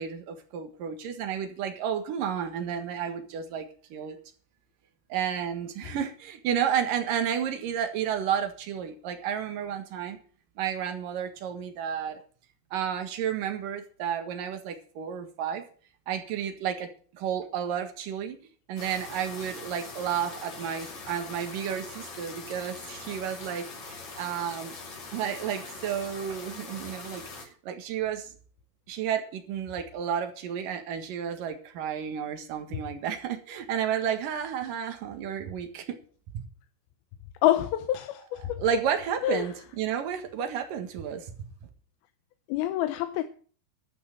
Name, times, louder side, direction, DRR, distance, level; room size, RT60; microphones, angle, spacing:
voice 1, 0.0-4.2 5.1-10.2 10.6-12.2 12.7-15.6 16.1-18.4 18.7-24.7 25.1-28.3 28.9-36.0 36.3-36.4 38.4-41.3, right 8 dB, 65° right, 6 dB, 3.2 m, -32 dB
sound 1, 18.8-27.5, left 3 dB, 50° left, 3.8 m, -42 dB
voice 2, 37.4-38.6 39.2-39.5 42.5-43.2, left 14 dB, 85° left, 9 dB, 2.6 m, -26 dB
12.5 x 6.3 x 8.9 m, 0.43 s
omnidirectional pair, 4.3 m